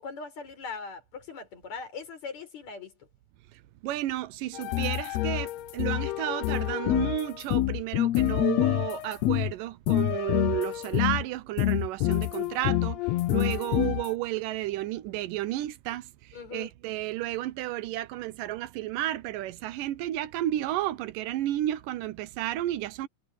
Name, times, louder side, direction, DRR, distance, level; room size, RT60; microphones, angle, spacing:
voice 1, 0.0-2.9 16.3-16.7, left 5 dB, 60° left, 5.5 m, -40 dB
voice 2, 3.8-23.1, right 14 dB, 85° right, 2.5 m, -32 dB
sound 1, 4.5-9.5 9.9-11.2 11.6-14.1, left 16 dB, 80° left, 1.5 m, -27 dB
omnidirectional pair, 3.7 m